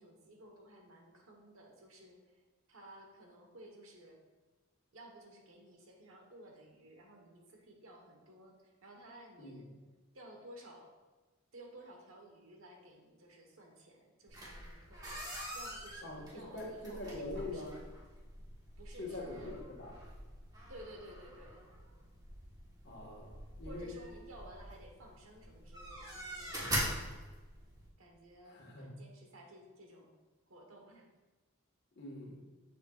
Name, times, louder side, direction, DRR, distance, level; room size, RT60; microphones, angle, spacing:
voice 1, 0.0-2.4 2.7-4.2 4.9-9.7 10.1-10.9 11.5-17.9 18.8-19.5 20.7-21.6 23.6-27.3 28.0-30.2 30.5-31.1, right 1 dB, 75° right, 1 dB, 1.2 m, -55 dB
sound 1, 14.3-27.9, right 1 dB, 20° right, 1.2 m, -44 dB
voice 2, 16.0-17.8 19.0-19.5 19.8-19.9 22.8-23.9 28.5-28.9 32.0-32.4, left 2 dB, 50° left, -1 dB, 1.5 m, -44 dB
7.7 x 6.7 x 2.4 m, 1.2 s
head